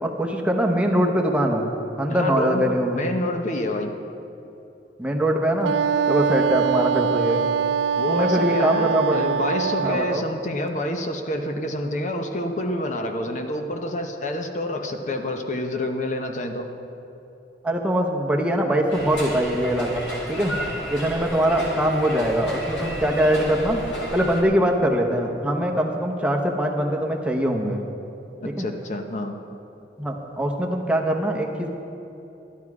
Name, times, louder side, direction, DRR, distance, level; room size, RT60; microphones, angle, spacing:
voice 1, 0.0-1.7 2.0-3.0 5.0-5.7 6.1-7.4 8.1-9.2 9.8-10.2 17.6-20.5 20.9-23.8 24.1-27.8 28.6-28.7 30.0-31.7, right 1 dB, 5° right, 1 dB, 0.8 m, -22 dB
voice 2, 2.1-3.9 7.9-16.7 28.4-29.4, left 1 dB, 45° left, 5 dB, 0.8 m, -28 dB
Wind instrument woodwind instrument, 5.6-10.3, right 7 dB, 80° right, 0.3 m, -23 dB
sound 1, 18.9-24.4, equal, 85° left, 1.9 m, -32 dB
12.5 x 11.5 x 4.8 m, 2.9 s
head